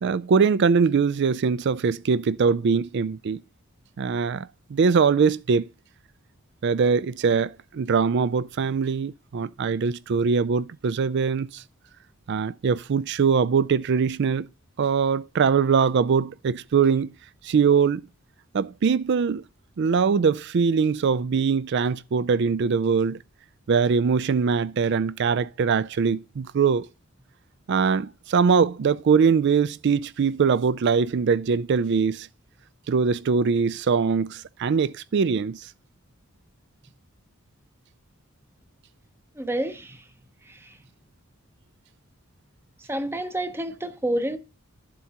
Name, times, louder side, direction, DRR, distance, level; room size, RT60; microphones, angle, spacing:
voice 1, 0.0-3.4 4.0-5.7 6.6-11.6 12.3-14.5 14.8-17.1 17.4-18.0 18.5-19.4 19.8-23.2 23.7-26.9 27.7-32.3 32.9-35.7, right 5 dB, 55° right, 0.4 m, -22 dB
voice 2, 39.3-40.1 40.4-40.8 42.8-44.4, right 1 dB, 10° right, 0.7 m, -29 dB
12.0 x 7.5 x 2.9 m
head